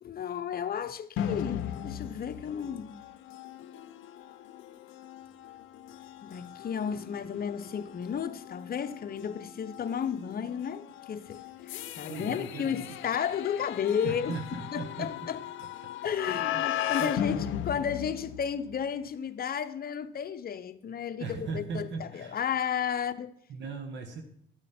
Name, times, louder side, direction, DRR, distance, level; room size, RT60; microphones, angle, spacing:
voice 1, 0.0-3.0 6.2-14.4 14.7-15.4 16.0-21.3 21.5-23.3, left 8 dB, 50° left, 0.8 m, -33 dB
sound 1, 1.2-18.9, left 10 dB, 80° left, 0.6 m, -37 dB
sound 2, 5.2-14.5, left 4 dB, 15° left, 1.9 m, -60 dB
voice 2, 12.1-12.9 14.0-15.2 15.8-15.9 16.2-16.6 17.0-17.5 17.7-17.9 21.2-22.4 23.5-24.2, right 4 dB, 65° right, 1.3 m, -38 dB
12.5 x 8.8 x 4.4 m
cardioid pair, 90°, 20 cm